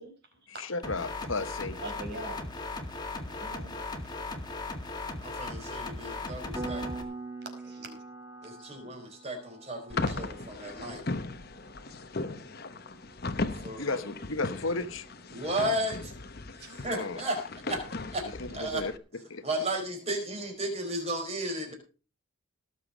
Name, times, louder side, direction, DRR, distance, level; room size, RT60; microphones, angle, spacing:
voice 1, 0.0-0.6 1.8-2.5 3.2-3.7 7.6-7.9 16.6-16.7, right 2 dB, 50° right, 4.8 m, -43 dB
voice 2, 0.6-1.8 13.8-15.1 16.9-17.2 18.2-18.9 19.3-19.5, left 3 dB, 70° left, 1.3 m, -34 dB
sound 1, 0.8-7.0, left 3 dB, 20° left, 2.0 m, -37 dB
voice 3, 5.2-7.1 8.4-11.0 13.6-13.9 15.3-16.1 16.8-17.4 17.7-17.8 18.1-18.8 19.4-21.7, right 1 dB, 30° right, 4.7 m, -34 dB
Piano, 6.6-16.9, right 3 dB, 15° right, 2.2 m, -46 dB
sound 2, 9.9-19.0, left 3 dB, 45° left, 1.0 m, -37 dB
18.5 x 7.3 x 5.2 m
head